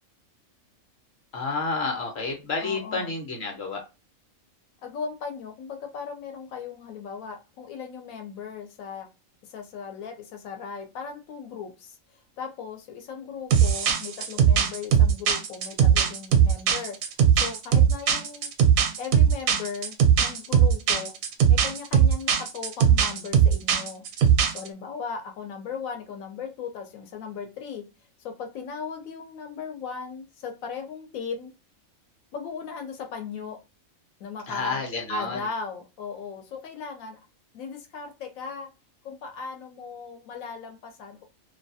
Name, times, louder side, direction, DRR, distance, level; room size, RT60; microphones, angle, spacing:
voice 1, 1.3-3.8 34.5-35.5, left 4 dB, 55° left, 0.9 m, -30 dB
voice 2, 2.6-3.1 4.8-9.1 9.5-12.0 12.4-17.0 17.3-18.5 19.0-21.1 21.5-24.0 24.5-27.8 28.2-31.5 32.3-33.6 34.2-37.2 37.5-38.7 39.0-41.2, left 5 dB, 85° left, 1.1 m, -37 dB
sound 1, 13.5-24.7, right 8 dB, 80° right, 1.0 m, -20 dB
2.6 x 2.2 x 2.7 m
omnidirectional pair, 1.4 m